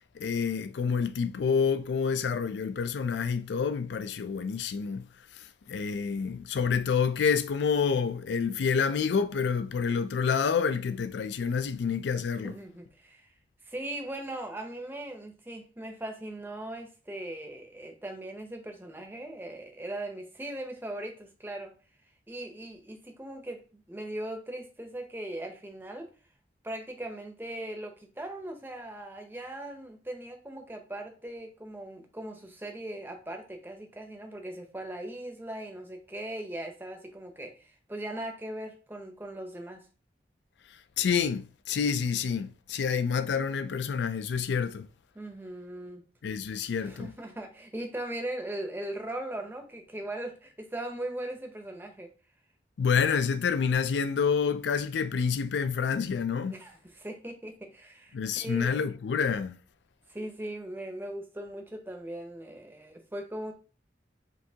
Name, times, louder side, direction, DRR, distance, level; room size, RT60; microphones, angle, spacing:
voice 1, 0.1-5.1 5.3-12.5 41.0-44.9 46.2-47.1 52.8-56.5 58.1-59.6, left 6 dB, 80° left, 0.4 m, -28 dB
voice 2, 12.4-13.3 13.6-21.7 22.3-26.1 26.6-39.9 45.1-46.1 46.8-52.1 56.5-58.8 60.1-63.5, right 1 dB, 10° right, 0.6 m, -39 dB
5.3 x 2.7 x 2.8 m
head